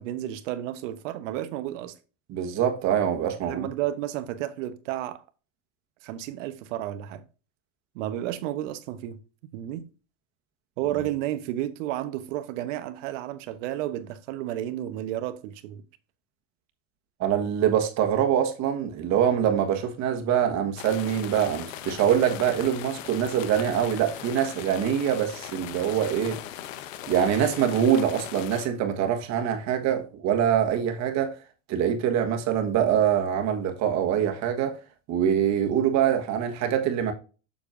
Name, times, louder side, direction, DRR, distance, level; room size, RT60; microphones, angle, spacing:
voice 1, 0.0-1.9 3.4-5.2 6.0-7.2 7.9-9.2 9.5-9.9 10.8-15.8, right 13 dB, 75° right, 1.1 m, -32 dB
voice 2, 2.3-3.7 17.2-26.4 27.1-31.3 31.7-34.8 35.1-37.1, right 9 dB, 45° right, 1.5 m, -24 dB
sound 1, 20.8-28.7, left 12 dB, 80° left, 1.0 m, -39 dB
7.4 x 6.6 x 2.6 m
supercardioid pair, 135°, 38 cm